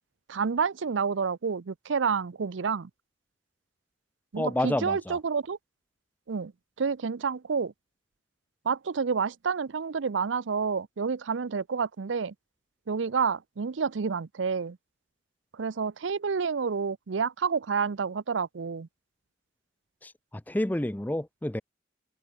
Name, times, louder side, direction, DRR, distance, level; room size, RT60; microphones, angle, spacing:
voice 1, 0.3-2.9 4.3-5.6 6.3-6.5 6.8-7.7 8.6-12.3 12.9-14.8 15.5-18.9, right 5 dB, 75° right, 0.5 m, -29 dB
voice 2, 4.4-5.2 20.0-21.6, left 1 dB, 10° left, 0.5 m, -30 dB
head